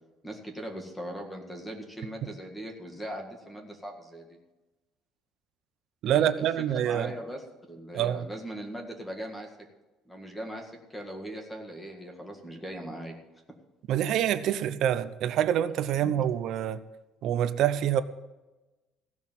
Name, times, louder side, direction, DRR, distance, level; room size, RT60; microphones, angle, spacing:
voice 1, 0.2-4.4 6.0-6.5 6.8-9.5 10.1-13.2 16.0-16.2, equal, 10° left, 1.9 m, -40 dB
voice 2, 6.0-7.1 7.9-8.3 13.9-16.8 17.2-18.0, right 10 dB, 55° right, 0.7 m, -26 dB
16.0 x 6.3 x 7.4 m
cardioid pair, 155°, 0 cm